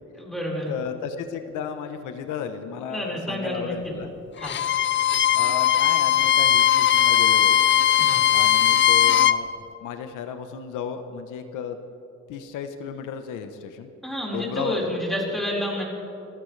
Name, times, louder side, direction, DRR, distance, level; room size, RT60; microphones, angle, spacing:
voice 1, 0.1-0.7 2.9-3.9 4.4-4.6 8.0-8.2 14.0-15.8, equal, ahead, -3 dB, 4.8 m, -29 dB
voice 2, 0.7-4.1 5.3-7.6 8.3-9.5 9.8-11.8 12.3-13.9 14.2-14.9, left 7 dB, 90° left, 8 dB, 1.0 m, -34 dB
Bowed string instrument, 4.4-9.4, left 10 dB, 40° left, 0.5 m, -19 dB
28.0 x 15.0 x 3.3 m, 2.7 s
cardioid pair, 90°, 30 cm